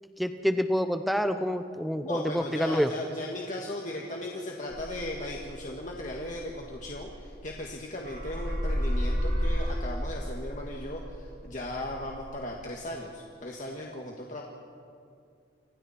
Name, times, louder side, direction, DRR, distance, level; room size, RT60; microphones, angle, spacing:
voice 1, 0.2-2.9, equal, ahead, 8 dB, 1.0 m, -27 dB
voice 2, 2.0-14.4, left 1 dB, 45° left, -1 dB, 1.9 m, -37 dB
sound 1, 4.7-7.7 8.0-12.3, equal, 70° right, 8.0 m, -32 dB
29.5 x 26.0 x 4.4 m, 2.3 s
head